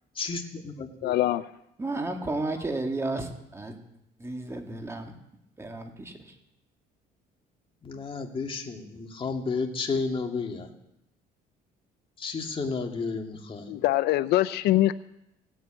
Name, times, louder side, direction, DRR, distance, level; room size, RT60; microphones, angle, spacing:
voice 1, 0.2-1.1 7.8-10.7 12.2-13.7, left 4 dB, 30° left, 3 dB, 2.2 m, -32 dB
voice 2, 1.0-1.4 13.7-14.9, left 15 dB, 80° left, 15 dB, 0.5 m, -23 dB
voice 3, 1.8-3.8 4.2-5.1 5.6-6.3, right 2 dB, 15° right, 3 dB, 2.2 m, -33 dB
17.0 x 8.0 x 8.9 m, 0.83 s
cardioid pair, 110°, 17 cm